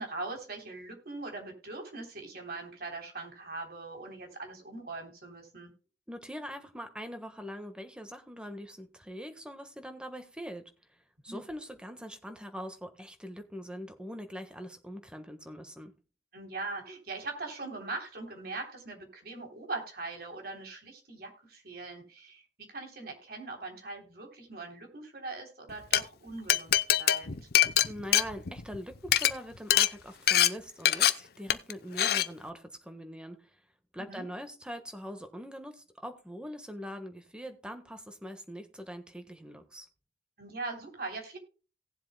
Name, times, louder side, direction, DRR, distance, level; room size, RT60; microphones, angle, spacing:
voice 1, 0.0-5.7 11.3-11.4 16.3-27.5 34.0-34.3 40.4-41.4, right 3 dB, 60° right, 2 dB, 3.4 m, -41 dB
voice 2, 6.1-10.7 11.2-15.9 27.8-33.5 33.9-39.9, equal, 5° right, 7 dB, 1.4 m, -42 dB
Glass, 25.7-26.0 26.5-28.8 29.0-29.3 29.7-29.9 30.3-30.5 30.9-31.1 31.5-31.7 32.0-32.3, left 12 dB, 60° left, 0.7 m, -23 dB
18.0 x 7.6 x 2.2 m, 0.36 s
head